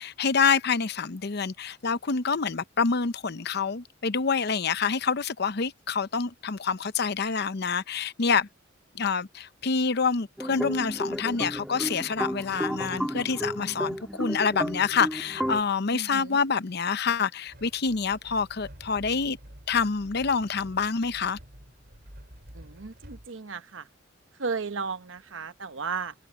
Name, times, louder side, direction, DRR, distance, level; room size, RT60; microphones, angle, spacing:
voice 1, 0.0-8.5 8.9-19.4 19.7-21.4, left 5 dB, 60° left, 0.8 m, -27 dB
sound 1, 10.4-15.6, equal, 5° right, 1.6 m, -32 dB
voice 2, 15.9-16.4 22.5-23.9 24.4-26.1, right 5 dB, 80° right, 1.0 m, -34 dB
sound 2, 17.5-23.3, equal, 55° right, 5.9 m, -49 dB
head